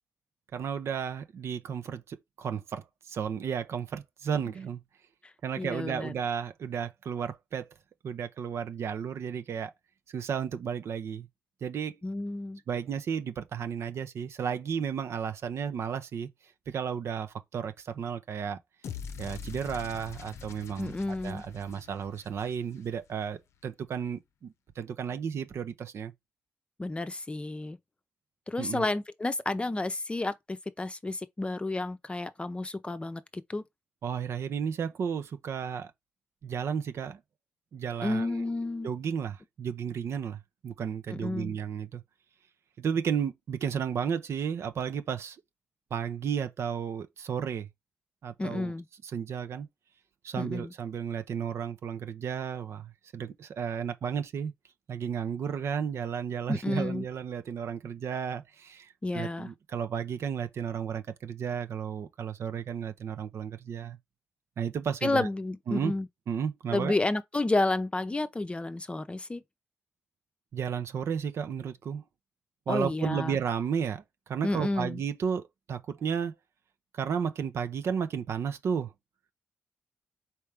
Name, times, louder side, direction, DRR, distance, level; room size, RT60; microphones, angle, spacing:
voice 1, 0.5-4.8 5.4-7.7 8.0-9.7 10.1-11.3 11.6-12.0 12.7-16.3 16.7-18.6 19.2-20.9 21.2-26.1 28.6-28.9 34.0-35.9 36.4-37.2 37.7-38.5 38.8-42.0 42.8-45.4 45.9-47.7 48.2-48.7 49.1-49.7 50.2-54.5 54.9-64.0 64.6-65.3 65.7-65.9 66.3-66.9 70.5-72.0 72.7-74.0 74.3-76.3 76.9-78.9, right 7 dB, 70° right, 0.7 m, -33 dB
voice 2, 5.6-6.1 12.0-12.6 20.8-21.4 26.8-27.8 28.5-33.6 38.0-38.9 41.1-41.5 48.4-48.9 50.4-50.7 56.5-57.0 59.0-59.5 65.0-66.1 66.7-69.4 72.7-73.4 74.4-75.0, left 2 dB, 25° left, 0.6 m, -31 dB
sound 1, 18.8-23.1, left 6 dB, 75° left, 0.6 m, -43 dB
4.5 x 3.2 x 3.5 m
cardioid pair, 60°, 5 cm